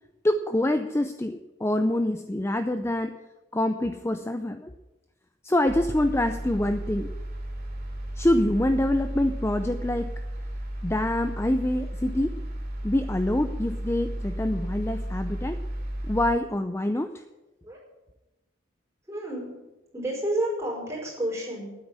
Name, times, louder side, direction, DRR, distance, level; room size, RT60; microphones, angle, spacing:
voice 1, 0.2-3.2 3.5-4.7 5.4-7.1 8.2-10.1 10.8-12.4 12.8-15.6 16.1-17.2, left 1 dB, 15° left, 8 dB, 0.4 m, -26 dB
sound 1, 5.7-16.3, right 1 dB, 50° right, 3.4 m, -34 dB
voice 2, 19.1-19.5 19.9-21.8, right 1 dB, 15° right, -4 dB, 4.8 m, -30 dB
9.6 x 8.4 x 9.6 m, 1.0 s
head